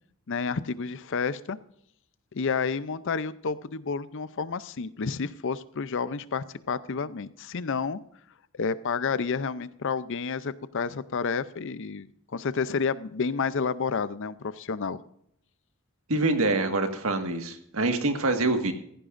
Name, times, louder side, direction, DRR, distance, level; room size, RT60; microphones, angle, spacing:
voice 1, 0.3-1.6 2.3-8.0 8.5-15.0, left 5 dB, 60° left, 16 dB, 0.6 m, -30 dB
voice 2, 16.1-18.7, right 2 dB, 75° right, 6 dB, 1.7 m, -25 dB
16.0 x 15.0 x 2.6 m, 0.72 s
head